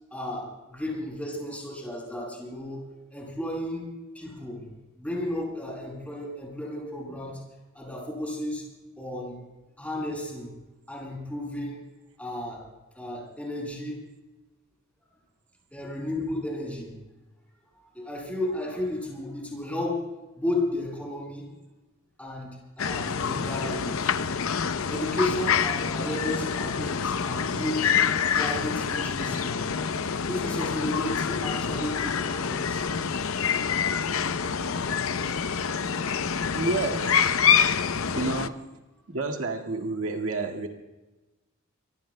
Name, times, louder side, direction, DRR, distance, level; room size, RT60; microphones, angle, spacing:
voice 1, 0.1-3.9 4.1-4.7 5.0-7.4 7.7-8.7 9.0-9.4 9.8-10.5 10.9-11.9 12.2-12.7 12.9-14.0 15.7-17.0 17.9-20.1 20.4-21.5 22.2-24.1 24.9-29.8 30.1-33.0 34.4-34.5 36.0-36.5 37.5-37.6, left 1 dB, 5° left, -3 dB, 7.3 m, -33 dB
sound 1, 22.8-38.5, left 7 dB, 85° left, 0.7 m, -26 dB
voice 2, 36.5-37.2 38.1-38.7 39.1-40.7, right 3 dB, 85° right, 2 dB, 1.9 m, -29 dB
25.0 x 24.0 x 2.2 m, 1.1 s
head